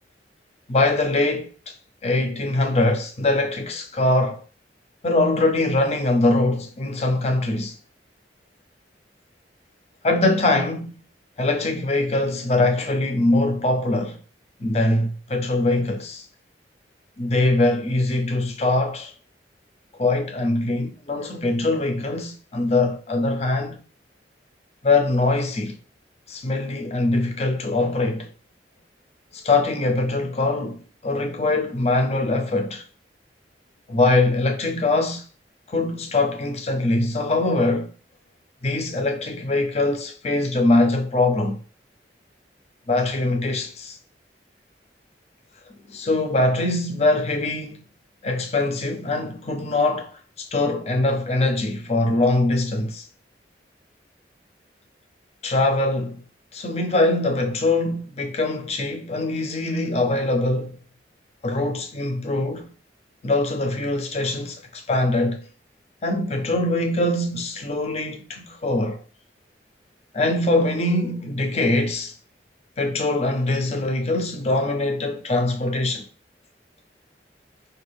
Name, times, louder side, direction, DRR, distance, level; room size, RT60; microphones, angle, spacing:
voice 1, 0.7-1.7 2.0-4.4 5.0-7.7 10.0-11.0 11.4-14.2 14.6-16.3 17.2-19.1 20.0-23.8 24.8-25.8 26.3-28.3 29.3-32.8 33.9-35.2 35.7-37.9 38.6-41.6 42.9-44.0 45.9-47.8 48.2-53.1 55.4-56.2 56.5-60.8 61.4-62.7 63.2-65.4 66.0-69.0 70.1-72.1 72.8-76.1, left 2 dB, 35° left, 0.5 m, -22 dB
5.4 x 2.3 x 3.3 m
head